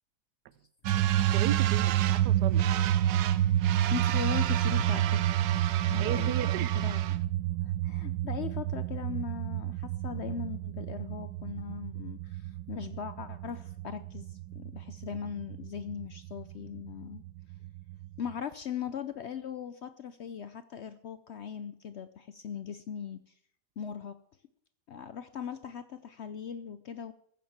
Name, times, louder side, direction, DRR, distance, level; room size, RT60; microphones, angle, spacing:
sound 1, 0.9-18.3, right 12 dB, 90° right, 1.4 m, -29 dB
voice 1, 1.3-2.6 6.0-6.8, right 11 dB, 70° right, 16 dB, 1.2 m, -35 dB
voice 2, 3.3-5.4 5.9-7.3 7.6-17.2 18.2-23.2 23.8-24.2 24.9-27.1, left 8 dB, 80° left, 12 dB, 0.6 m, -39 dB
14.5 x 7.3 x 7.3 m, 0.69 s
omnidirectional pair, 1.9 m